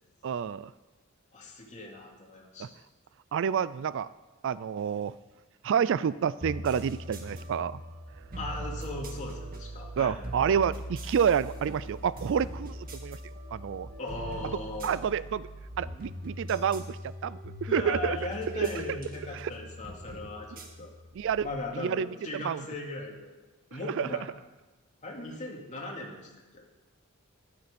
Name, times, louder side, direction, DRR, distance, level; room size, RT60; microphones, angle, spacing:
voice 1, 0.2-0.7 2.6-2.7 3.3-4.1 4.4-5.1 5.6-7.8 10.0-13.2 13.5-13.9 14.8-15.5 15.8-18.2 18.5-18.7 19.3-19.5 21.1-21.5 21.8-22.6 24.0-24.1, right 7 dB, 60° right, 18 dB, 0.4 m, -29 dB
voice 2, 1.3-2.7 8.4-10.2 14.0-15.0 17.7-20.5 20.8-20.9 21.4-23.3 23.7-24.2 25.0-26.6, left 2 dB, 35° left, -1 dB, 2.6 m, -38 dB
sound 1, 6.4-21.7, equal, 45° right, 1.8 m, -41 dB
13.5 x 11.5 x 5.2 m, 1.2 s
head